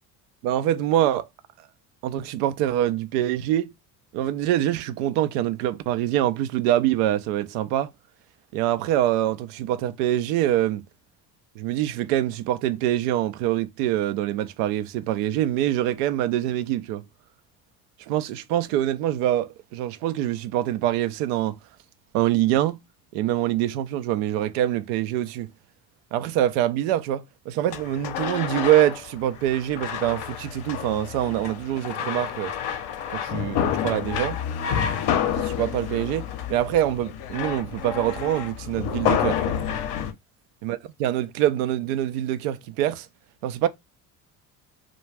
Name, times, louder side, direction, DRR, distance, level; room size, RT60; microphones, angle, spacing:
voice 1, 0.4-1.3 2.0-3.7 4.1-7.9 8.5-10.9 11.6-17.0 18.1-21.6 22.1-22.8 23.1-25.5 26.1-32.5 33.1-34.4 35.4-39.6 40.6-43.1 43.4-43.7, right 12 dB, 75° right, 0.5 m, -25 dB
sound 1, 27.7-40.1, left 9 dB, 55° left, 0.6 m, -29 dB
2.3 x 2.1 x 3.3 m
hypercardioid pair, 60°, 47 cm